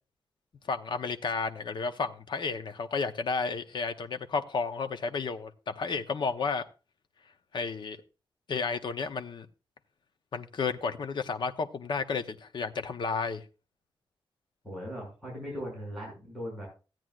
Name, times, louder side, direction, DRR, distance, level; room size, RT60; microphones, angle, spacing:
voice 1, 0.7-6.6 7.5-8.0 8.5-9.5 10.3-13.4, left 4 dB, 60° left, 0.9 m, -32 dB
voice 2, 14.6-16.7, equal, 5° right, 6.2 m, -39 dB
16.0 x 9.2 x 2.5 m
wide cardioid pair, 150°, 9 cm